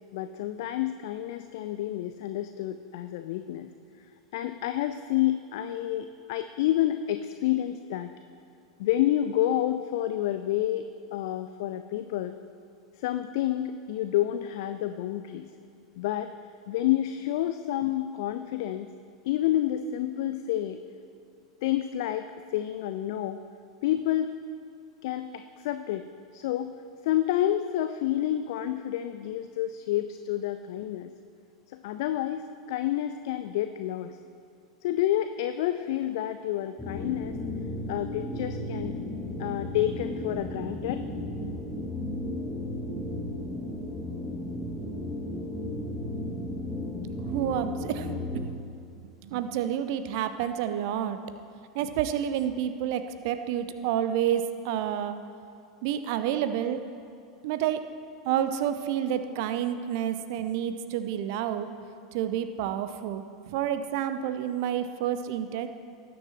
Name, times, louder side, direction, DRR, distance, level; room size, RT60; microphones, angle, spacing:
voice 1, 0.1-3.7 4.3-8.1 8.8-12.4 13.0-15.5 15.9-16.3 16.7-18.9 19.2-20.8 21.6-23.4 23.8-24.3 25.0-26.0 26.3-26.7 27.0-31.1 31.7-32.4 32.7-34.2 34.8-37.4 37.9-38.9 39.4-41.0, left 12 dB, 55° left, 9 dB, 0.4 m, -29 dB
sound 1, 36.8-48.5, left 1 dB, ahead, 1.5 m, -34 dB
voice 2, 47.3-48.4 49.2-51.2 51.7-55.2 55.8-56.8 57.4-57.8 58.2-61.7 62.1-65.7, right 10 dB, 50° right, 10 dB, 0.7 m, -29 dB
18.5 x 10.0 x 3.1 m, 2.5 s
figure-of-eight pair, 85°, 3 cm